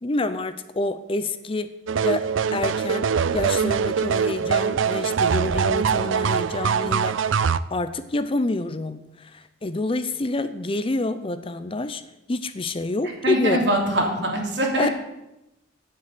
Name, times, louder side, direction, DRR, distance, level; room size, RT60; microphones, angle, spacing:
voice 1, 0.0-1.7 2.0-7.4 7.7-12.0 12.3-13.7 14.8-14.9, left 2 dB, 30° left, 12 dB, 0.5 m, -27 dB
sound 1, 1.9-7.6, right 6 dB, 90° right, 0.4 m, -23 dB
voice 2, 13.2-14.9, right 1 dB, 65° right, 0 dB, 3.1 m, -23 dB
9.3 x 7.5 x 9.0 m, 0.91 s
head